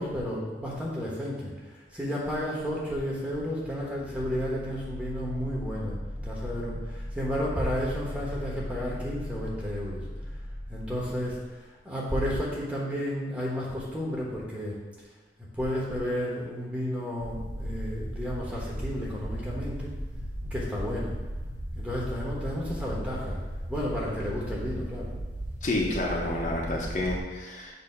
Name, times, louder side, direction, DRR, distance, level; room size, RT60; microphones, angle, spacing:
voice 1, 0.0-6.0 6.2-10.0 10.7-14.7 15.5-19.9 20.5-21.1 21.8-23.4 23.7-25.1, equal, 10° right, -5 dB, 1.1 m, -32 dB
sound 1, 3.3-11.5, equal, 10° left, 0.4 m, -38 dB
sound 2, 17.2-27.2, equal, 45° right, 0.8 m, -36 dB
voice 2, 25.6-27.7, left 1 dB, 45° left, -2 dB, 0.8 m, -29 dB
6.9 x 2.8 x 5.5 m, 1.3 s
head